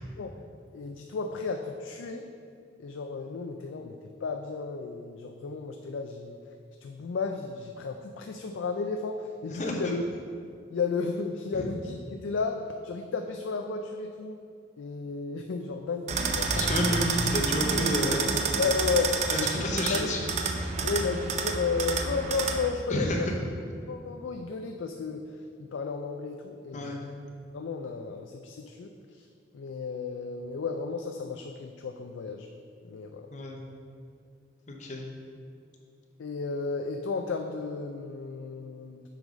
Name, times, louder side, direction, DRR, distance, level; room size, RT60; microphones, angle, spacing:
voice 1, 0.7-2.3 2.8-6.4 6.8-10.0 10.7-14.4 14.8-16.5 18.6-19.6 19.9-20.1 20.8-23.3 23.9-25.2 25.6-27.0 27.5-29.3 29.5-32.5 32.8-33.3 36.2-39.1, left 4 dB, 75° left, 4 dB, 0.4 m, -33 dB
voice 2, 9.5-9.9 11.5-11.7 16.5-18.4 19.3-20.2 20.5-20.7 22.9-23.3 26.7-27.0 33.3-33.6 34.7-35.1, left 1 dB, 40° left, 1 dB, 0.8 m, -30 dB
sound 1, 16.1-22.7, right 4 dB, 35° right, 0.4 m, -29 dB
7.5 x 3.9 x 5.1 m, 2.3 s
head